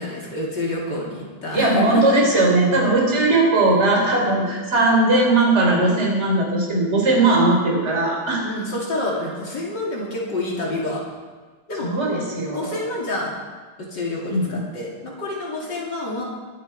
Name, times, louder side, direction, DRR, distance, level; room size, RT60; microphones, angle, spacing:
voice 1, 0.0-2.0 8.4-11.0 11.7-11.9 12.5-13.3 13.8-16.2, left 2 dB, 55° left, -4 dB, 3.5 m, -28 dB
voice 2, 1.5-8.4 11.8-12.8 14.3-14.6, right 2 dB, 30° right, -2 dB, 4.4 m, -19 dB
23.0 x 10.0 x 4.8 m, 1.4 s
omnidirectional pair, 2.3 m